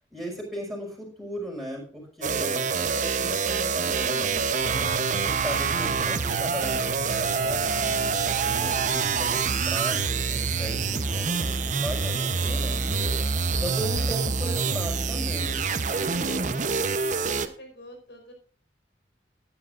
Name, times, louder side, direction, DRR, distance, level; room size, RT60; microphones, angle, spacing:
voice 1, 0.1-4.9 5.2-13.1 13.5-15.6 16.1-16.5, equal, ahead, -1 dB, 5.5 m, -37 dB
sound 1, 2.2-17.5, right 5 dB, 45° right, 0.9 m, -26 dB
sound 2, 4.3-17.0, equal, 15° right, 3.3 m, -45 dB
sound 3, 4.6-11.0, right 6 dB, 80° right, 0.4 m, -38 dB
voice 2, 15.9-18.3, equal, 70° left, 4 dB, 5.1 m, -48 dB
18.5 x 10.0 x 2.5 m, 0.43 s
head